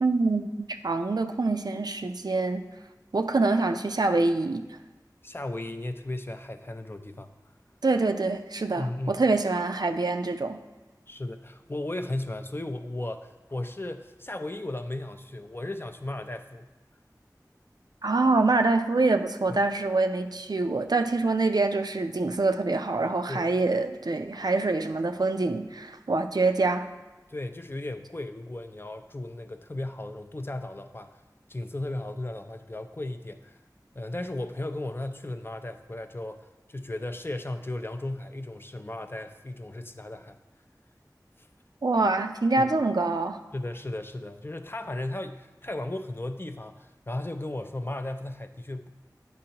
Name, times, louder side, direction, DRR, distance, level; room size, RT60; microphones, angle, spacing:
voice 1, 0.0-2.6 3.1-4.6 7.8-10.6 18.0-26.9 41.8-43.4, right 3 dB, 70° right, 6 dB, 0.4 m, -25 dB
voice 2, 5.2-7.3 8.7-9.2 11.1-16.7 19.5-19.6 23.3-23.5 27.3-31.2 31.5-33.6 33.9-40.4 41.4-41.5 42.6-42.7 43.5-48.9, left 1 dB, 30° left, 7 dB, 0.4 m, -35 dB
9.0 x 5.3 x 2.9 m, 1.1 s
wide cardioid pair, 40°, 7 cm